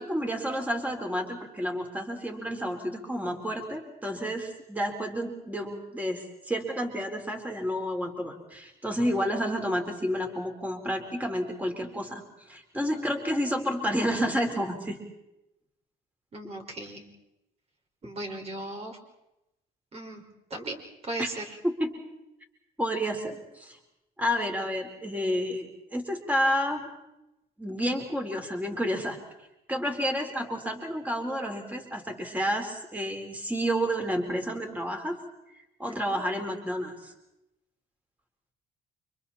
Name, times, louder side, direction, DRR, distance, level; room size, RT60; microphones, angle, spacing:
voice 1, 0.0-15.0 21.2-21.3 21.6-21.9 22.8-23.8 24.2-26.9 27.6-29.2 29.7-35.2 35.8-37.1, equal, 10° right, 3 dB, 4.3 m, -30 dB
voice 2, 16.3-17.0 18.0-19.0 19.9-20.2 20.5-21.4 35.9-36.2, right 1 dB, 40° right, 2 dB, 5.3 m, -37 dB
30.0 x 26.0 x 4.3 m, 0.88 s
cardioid pair, 110°, 17 cm